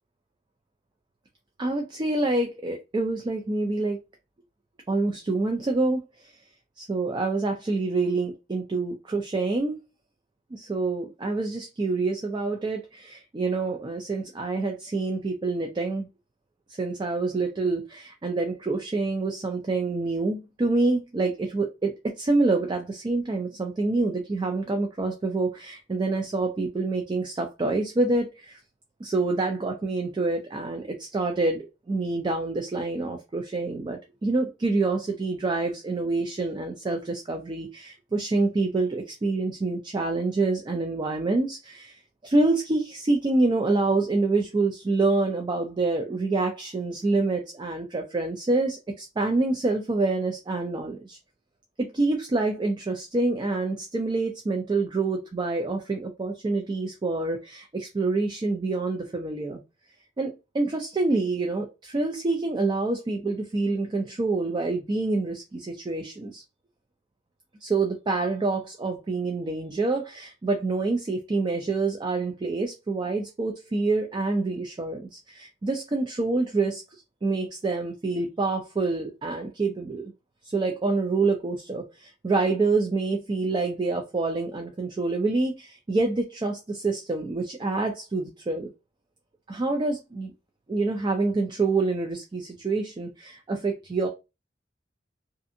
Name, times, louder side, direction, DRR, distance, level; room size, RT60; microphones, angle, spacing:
voice 1, 1.6-4.0 4.9-6.3 6.9-9.8 10.5-16.1 16.8-28.6 29.0-51.2 51.8-59.6 60.2-66.4 67.6-80.1 80.4-88.7 89.5-90.3 90.7-94.1, right 3 dB, 25° right, 0.3 m, -27 dB
2.5 x 2.5 x 2.5 m
head